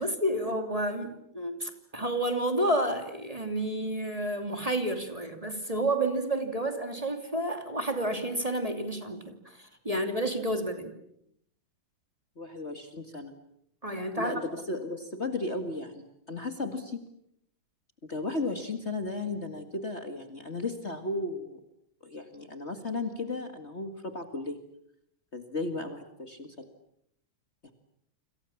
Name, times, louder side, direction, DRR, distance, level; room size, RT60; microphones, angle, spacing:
voice 1, 0.0-10.9 13.8-14.3, right 1 dB, 15° right, 6 dB, 2.8 m, -30 dB
voice 2, 12.4-13.3 14.2-17.0 18.0-21.6 22.0-24.6 25.3-26.6, left 2 dB, 30° left, 7 dB, 2.2 m, -35 dB
29.5 x 26.5 x 7.2 m, 0.73 s
omnidirectional pair, 2.3 m